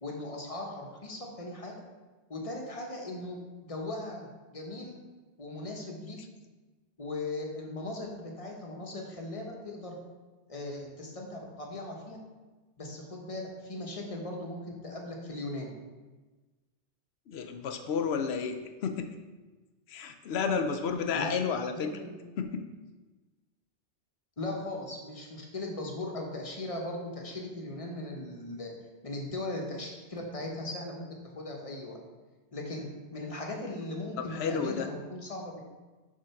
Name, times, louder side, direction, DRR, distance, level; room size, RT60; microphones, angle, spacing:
voice 1, 0.0-1.8 2.3-3.4 3.6-4.9 5.4-6.2 7.0-10.0 10.5-12.2 12.8-15.7 21.1-21.3 21.7-22.1 24.4-28.7 29.0-31.0 31.4-32.0 32.5-35.6, left 2 dB, 35° left, 0 dB, 1.0 m, -38 dB
voice 2, 17.3-19.1 19.9-22.0 22.4-22.7 34.2-34.9, left 6 dB, 70° left, 6 dB, 0.9 m, -31 dB
6.6 x 3.7 x 5.8 m, 1.3 s
omnidirectional pair, 1.2 m